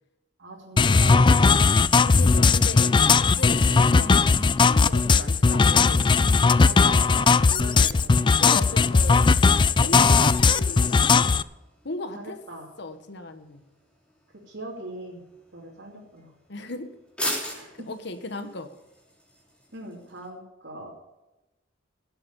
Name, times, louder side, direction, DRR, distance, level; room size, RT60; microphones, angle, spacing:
voice 1, 0.4-1.5 6.6-8.3 12.1-12.7 14.4-15.2 15.5-16.3 17.5-17.9 19.7-20.9, right 1 dB, 70° right, -5 dB, 3.0 m, -40 dB
sound 1, 0.7-20.3, left 1 dB, 5° left, 3.5 m, -43 dB
sound 2, 0.8-11.4, left 4 dB, 25° left, 0.4 m, -18 dB
voice 2, 2.0-4.1 4.4-6.1 8.4-9.3 9.8-11.3 11.8-12.4 12.8-13.6 16.5-16.9 17.2-17.5 17.9-18.7, left 2 dB, 65° left, 8 dB, 1.3 m, -37 dB
17.0 x 7.8 x 7.0 m, 1.0 s
head